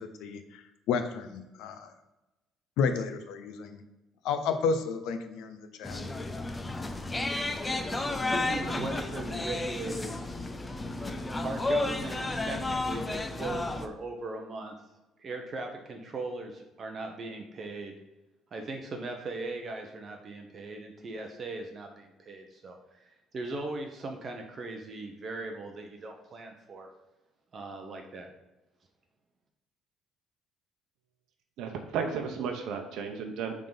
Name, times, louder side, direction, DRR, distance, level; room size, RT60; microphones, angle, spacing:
voice 1, 0.0-1.9 2.8-3.8 4.2-6.0, left 5 dB, 75° left, 8 dB, 0.8 m, -31 dB
sound 1, 5.8-13.9, left 2 dB, 10° left, 0.4 m, -32 dB
voice 2, 8.0-10.4 11.4-14.7 15.2-18.0 18.5-26.9 27.5-28.3, right 2 dB, 30° right, 3 dB, 0.8 m, -39 dB
voice 3, 31.6-33.7, right 6 dB, 65° right, 3 dB, 0.8 m, -34 dB
9.1 x 3.7 x 4.0 m, 1.0 s
cardioid pair, 175°, 0 cm